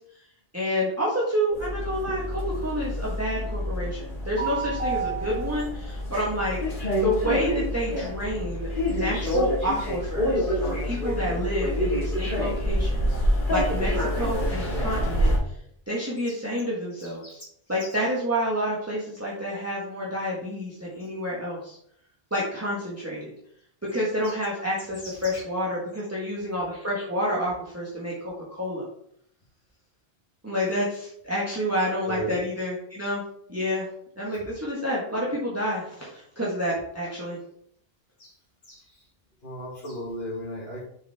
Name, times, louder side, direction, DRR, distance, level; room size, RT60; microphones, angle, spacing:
voice 1, 0.5-6.6 6.9-15.3 15.9-17.4 17.7-21.8 22.3-23.3 23.9-28.9 30.4-33.2 33.5-33.9 34.2-37.4, equal, 15° right, -6 dB, 1.5 m, -29 dB
sound 1, 1.5-15.4, equal, 55° left, 2.3 m, -27 dB
voice 2, 16.9-17.5 17.8-18.0 21.0-21.1 23.9-24.4 25.0-25.4 27.3-27.4 32.1-32.4 34.3-34.4 38.2-38.3 38.7-39.1 39.4-40.8, equal, 80° left, -8 dB, 2.3 m, -37 dB
6.8 x 5.5 x 3.6 m, 0.68 s
omnidirectional pair, 1.0 m